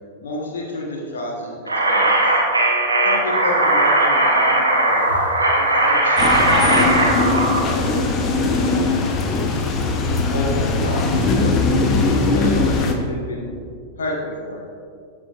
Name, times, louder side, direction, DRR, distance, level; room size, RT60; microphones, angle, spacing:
voice 1, 0.2-1.6 1.9-2.3 3.0-5.1 5.5-9.1 10.3-13.5 14.0-14.6, left 2 dB, 65° left, -3 dB, 1.2 m, -30 dB
sound 1, 1.7-7.6, right 2 dB, 80° right, 0.8 m, -18 dB
sound 2, 6.2-12.9, left 3 dB, 30° left, 0.8 m, -20 dB
12.5 x 5.0 x 2.5 m, 2.3 s
figure-of-eight pair, 90°, 0 cm